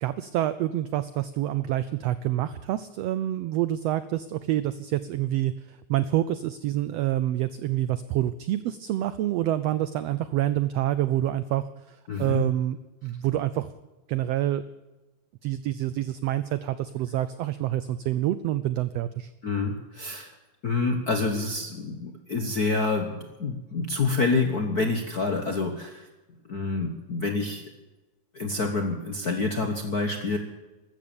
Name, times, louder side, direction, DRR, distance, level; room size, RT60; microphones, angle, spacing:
voice 1, 0.0-13.7 14.1-14.6 15.4-19.3, right 13 dB, 85° right, 14 dB, 1.4 m, -27 dB
voice 2, 12.1-12.5 19.4-20.3 20.6-26.1 26.5-27.7 28.3-30.4, left 3 dB, 55° left, 5 dB, 1.1 m, -27 dB
15.0 x 13.0 x 7.0 m, 1.1 s
omnidirectional pair, 3.6 m